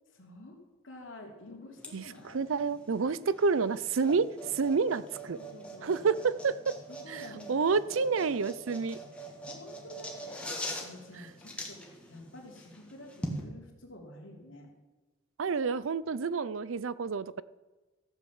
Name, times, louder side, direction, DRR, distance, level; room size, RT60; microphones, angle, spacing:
voice 1, 0.1-0.6 0.8-2.5 5.3-6.1 6.9-7.5 8.2-8.3 9.5-14.7, left 1 dB, 65° left, 0 dB, 3.0 m, -49 dB
sound 1, 1.8-13.4, equal, 5° left, 1.9 m, -43 dB
voice 2, 2.3-5.4 5.8-6.5 7.1-9.0 15.4-17.4, right 5 dB, 75° right, 18 dB, 0.5 m, -29 dB
14.5 x 8.3 x 7.2 m, 1.2 s
head